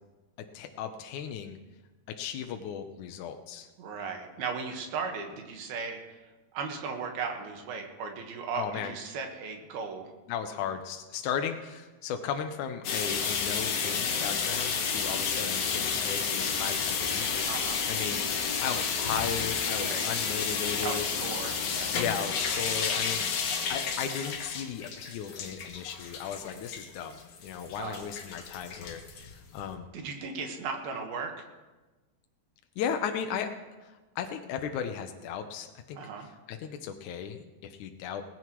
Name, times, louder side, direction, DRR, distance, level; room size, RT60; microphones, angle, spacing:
voice 1, 0.5-1.6 2.1-3.7 8.5-8.9 10.3-17.3 17.9-21.1 21.9-23.2 23.7-29.9 32.8-33.5 33.8-38.2, left 8 dB, 80° left, 5 dB, 1.7 m, -36 dB
voice 2, 3.8-6.2 6.5-10.1 17.4-17.8 19.8-20.0 20.8-21.9 27.8-28.0 29.9-31.3 36.0-36.3, right 5 dB, 75° right, 3 dB, 3.3 m, -36 dB
sound 1, 12.8-29.7, left 6 dB, 60° left, 2.4 m, -31 dB
19.0 x 16.0 x 3.1 m, 1.2 s
omnidirectional pair, 4.5 m